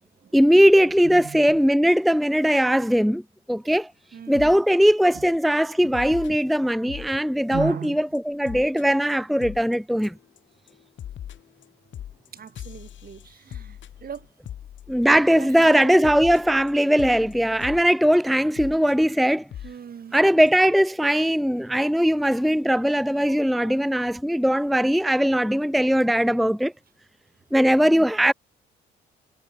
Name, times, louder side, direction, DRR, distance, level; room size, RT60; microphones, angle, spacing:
voice 1, 0.3-3.2 3.5-3.9 4.3-10.1 14.9-19.5 20.1-26.7 27.5-28.3, equal, ahead, 0.6 m, -20 dB
voice 2, 1.0-1.6 4.1-4.6 5.1-5.2 5.8-5.9 6.3-6.4 7.5-8.0 12.3-14.3 15.1-16.1 19.6-20.2 23.3-23.8, right 7 dB, 45° right, 1.7 m, -37 dB
sound 1, 4.3-4.6 5.0-5.2 5.9-7.1 7.5-7.9 8.1-8.2 8.4-8.8 9.1-9.2 9.4-9.7 10.0-10.4 10.7-15.4 15.7-15.8 16.0-17.8 18.6-18.9 19.5-19.7 20.1-20.2 20.5-20.6, left 10 dB, 65° left, 7.5 m, -39 dB
supercardioid pair, 75°, 21 cm